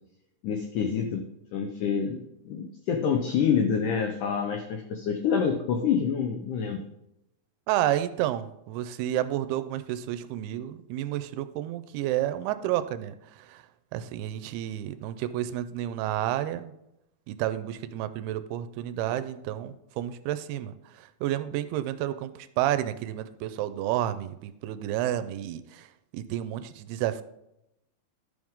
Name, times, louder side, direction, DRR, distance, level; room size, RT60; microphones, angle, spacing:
voice 1, 0.4-1.2 1.5-6.8, left 7 dB, 85° left, 5 dB, 1.8 m, -27 dB
voice 2, 7.7-16.7 17.3-27.2, right 12 dB, 85° right, 12 dB, 2.5 m, -31 dB
12.0 x 6.3 x 3.6 m, 0.85 s
omnidirectional pair, 4.7 m